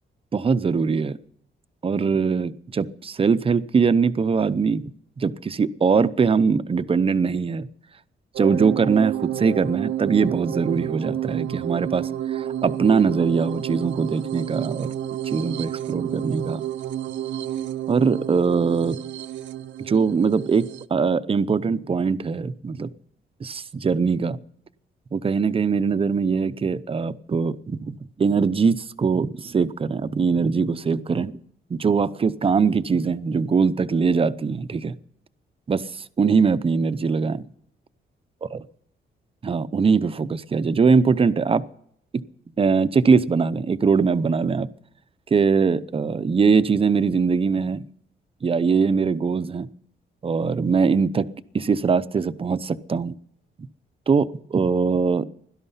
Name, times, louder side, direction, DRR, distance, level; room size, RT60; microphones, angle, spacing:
voice 1, 0.3-1.2 1.8-4.8 5.2-7.7 8.4-14.9 15.2-16.6 17.9-19.0 19.9-22.9 23.4-24.4 25.1-31.3 31.7-34.9 35.7-35.8 36.2-37.4 39.4-41.6 42.6-44.7 45.3-47.8 48.4-49.7 50.2-51.3 51.5-53.1 54.1-55.2, right 5 dB, 30° right, 14 dB, 0.7 m, -21 dB
sound 1, 8.4-20.9, right 11 dB, 80° right, 0.7 m, -30 dB
17.0 x 12.0 x 5.7 m, 0.68 s
cardioid pair, 125°, 19 cm